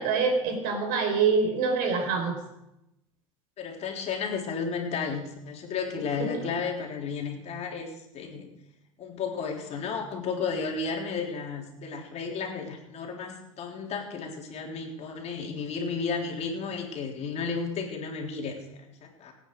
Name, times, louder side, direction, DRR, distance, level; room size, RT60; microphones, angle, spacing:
voice 1, 0.0-2.4 6.3-6.4, right 5 dB, 55° right, 4 dB, 4.7 m, -25 dB
voice 2, 3.6-8.5 9.0-18.6 19.0-19.3, left 5 dB, 40° left, 1 dB, 3.6 m, -33 dB
25.0 x 9.3 x 4.8 m, 0.88 s
hypercardioid pair, 90°, 18 cm